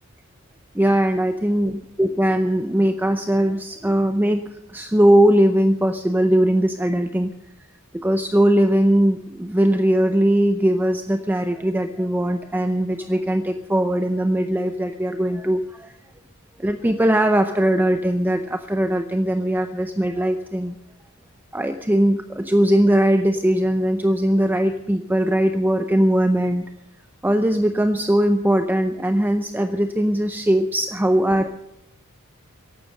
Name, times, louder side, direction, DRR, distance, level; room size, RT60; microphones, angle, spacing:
voice 1, 0.7-4.4 4.7-7.3 7.9-15.9 16.6-20.8 21.5-26.6 27.2-31.6, right 1 dB, 10° right, 7 dB, 0.6 m, -20 dB
15.0 x 11.5 x 6.4 m, 0.87 s
head